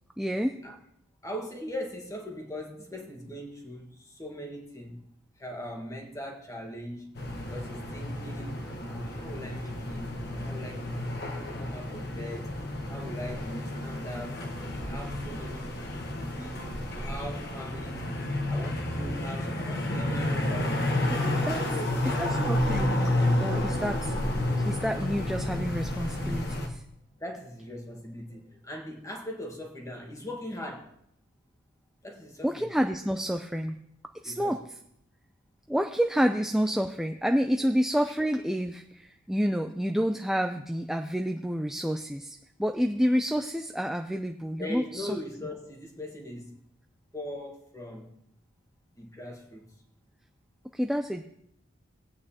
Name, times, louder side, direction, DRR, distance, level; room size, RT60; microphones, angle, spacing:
voice 1, 0.2-0.6 21.1-21.6 22.2-23.1 23.4-24.1 24.7-26.8 32.4-33.8 34.2-34.6 35.7-45.2 50.7-51.2, equal, ahead, 4 dB, 0.4 m, -29 dB
voice 2, 1.2-5.1 5.4-8.6 8.9-10.1 10.4-11.0 11.6-12.6 12.9-14.4 14.7-18.2 18.5-20.9 21.5-22.3 27.1-30.9 32.0-32.7 34.2-34.6 37.6-37.7 44.6-46.6 47.1-48.2 49.0-49.7, left 1 dB, 15° left, 1 dB, 1.5 m, -40 dB
sound 1, 7.2-26.7, left 1 dB, 55° left, 1.3 m, -30 dB
18.5 x 8.8 x 2.9 m, 0.74 s
head